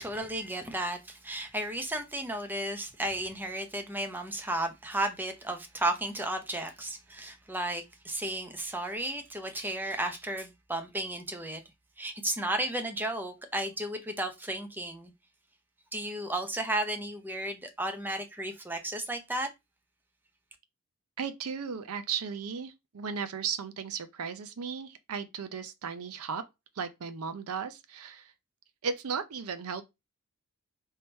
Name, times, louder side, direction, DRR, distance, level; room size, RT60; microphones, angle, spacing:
voice 1, 0.0-11.6 12.0-15.1 15.9-19.5, right 1 dB, 10° right, 0.6 m, -33 dB
voice 2, 21.2-26.4 26.8-28.3 28.8-29.8, right 6 dB, 70° right, 0.5 m, -35 dB
3.6 x 2.8 x 4.3 m
head